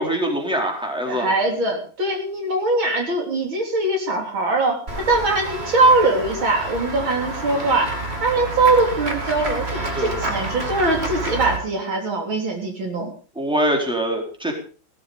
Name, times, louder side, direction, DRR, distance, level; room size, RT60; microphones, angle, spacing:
voice 1, 0.0-1.3 9.9-10.2 13.4-14.5, right 1 dB, ahead, 1 dB, 4.0 m, -23 dB
voice 2, 1.1-7.9 8.2-13.1, right 2 dB, 70° right, 2 dB, 4.2 m, -21 dB
Run / Walk footsteps / Bell, 4.9-11.6, right 2 dB, 30° right, 2.8 m, -29 dB
16.5 x 13.0 x 5.2 m, 0.38 s
omnidirectional pair, 2.3 m